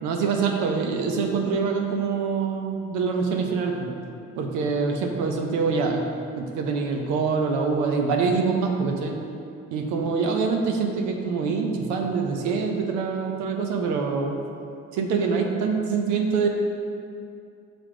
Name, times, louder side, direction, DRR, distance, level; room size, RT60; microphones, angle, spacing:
voice 1, 0.0-3.9 4.4-6.0 6.4-9.1 9.7-14.4 15.0-16.5, right 5 dB, 80° right, 2 dB, 0.7 m, -25 dB
5.7 x 3.5 x 5.0 m, 2.5 s
supercardioid pair, 70°, 30 cm